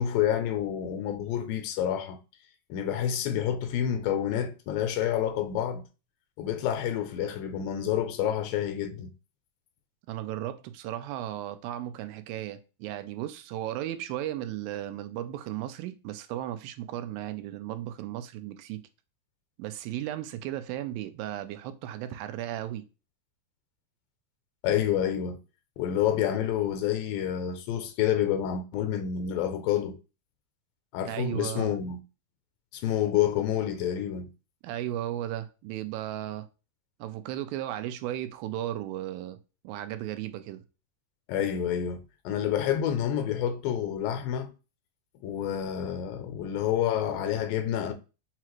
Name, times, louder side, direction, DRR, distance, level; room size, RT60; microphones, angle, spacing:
voice 1, 0.0-2.2 2.7-5.9 6.4-9.1 24.6-25.4 25.8-30.0 30.9-32.0 32.7-34.3 41.3-44.5 45.2-47.9, left 10 dB, 80° left, 2.2 m, -28 dB
voice 2, 10.1-18.8 19.6-22.8 31.1-31.7 34.6-36.5 37.0-39.4 39.6-40.6, right 12 dB, 85° right, 2.3 m, -35 dB
5.7 x 2.4 x 2.9 m
omnidirectional pair, 4.1 m